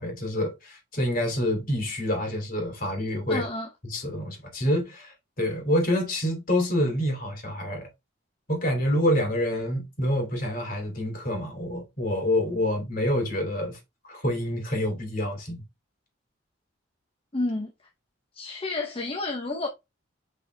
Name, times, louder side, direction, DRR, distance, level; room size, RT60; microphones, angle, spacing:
voice 1, 0.0-3.5 3.8-7.9 8.5-13.8 14.1-15.6, left 1 dB, 45° left, 2.8 m, -27 dB
voice 2, 3.3-3.7 17.3-17.7 18.3-19.7, left 2 dB, 30° left, 0.9 m, -30 dB
5.8 x 5.5 x 3.3 m
head